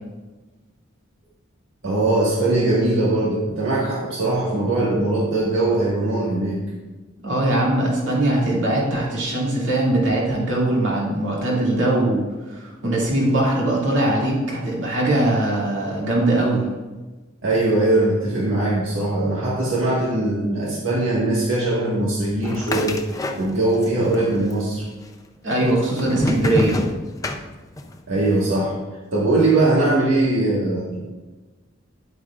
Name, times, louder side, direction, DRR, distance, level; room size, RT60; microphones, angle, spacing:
voice 1, 1.8-6.6 17.4-23.0 23.3-24.8 28.1-28.8 29.1-31.0, right 2 dB, 90° right, -6 dB, 1.6 m, -21 dB
voice 2, 7.2-16.7 25.4-26.8, right 1 dB, 65° right, -4 dB, 2.4 m, -21 dB
sound 1, 22.4-23.9 24.1-24.9 25.5-28.0, left 1 dB, 15° left, 0.5 m, -27 dB
9.7 x 8.2 x 2.4 m, 1.2 s
head